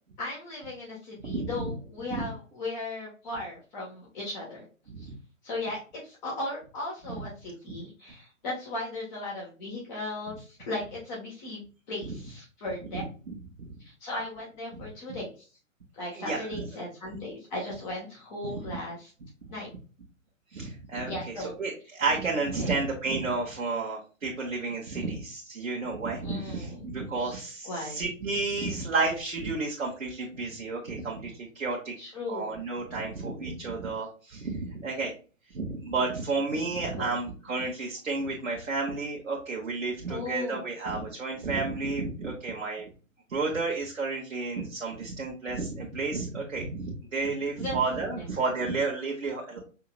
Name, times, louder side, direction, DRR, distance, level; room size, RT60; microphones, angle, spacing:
voice 1, 0.2-4.6 5.0-5.1 5.4-11.6 11.9-13.0 13.8-15.5 15.9-19.1 19.5-19.7 21.1-21.5 22.6-22.8 24.9-25.2 26.2-26.8 27.2-27.3 27.6-28.0 32.0-32.6 36.9-37.0 40.1-40.7 47.6-47.8 48.1-48.3, left 2 dB, 35° left, -4 dB, 1.5 m, -37 dB
voice 2, 16.1-16.7 18.4-18.5 20.5-31.9 32.3-35.1 35.5-42.9 43.3-49.6, right 3 dB, 65° right, -2 dB, 1.2 m, -31 dB
5.6 x 2.8 x 2.4 m, 0.36 s
figure-of-eight pair, 120°, 40 cm